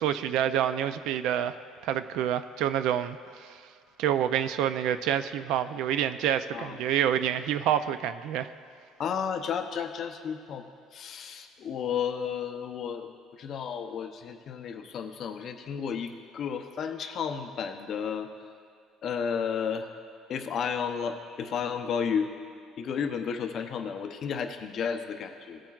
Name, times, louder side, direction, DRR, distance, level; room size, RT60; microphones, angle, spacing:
voice 1, 0.0-1.6 1.8-3.6 4.0-8.5, right 10 dB, 70° right, 12 dB, 0.4 m, -27 dB
voice 2, 9.0-10.6 10.9-18.3 19.0-19.9 20.3-22.3 22.8-25.6, left 7 dB, 45° left, 6 dB, 0.7 m, -32 dB
17.5 x 8.8 x 2.4 m, 2.4 s
cardioid pair, 155°, 0 cm